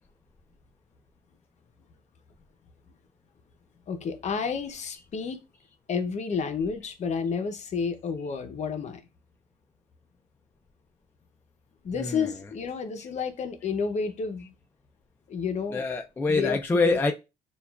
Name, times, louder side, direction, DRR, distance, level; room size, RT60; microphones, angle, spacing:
voice 1, 3.9-5.4 5.9-9.0 11.8-14.5 15.3-15.9 16.3-17.0, left 5 dB, 45° left, 0.6 m, -30 dB
voice 2, 11.9-12.5 15.7-17.1, left 3 dB, 10° left, 0.3 m, -26 dB
6.6 x 2.3 x 2.3 m
cardioid pair, 110°, 17 cm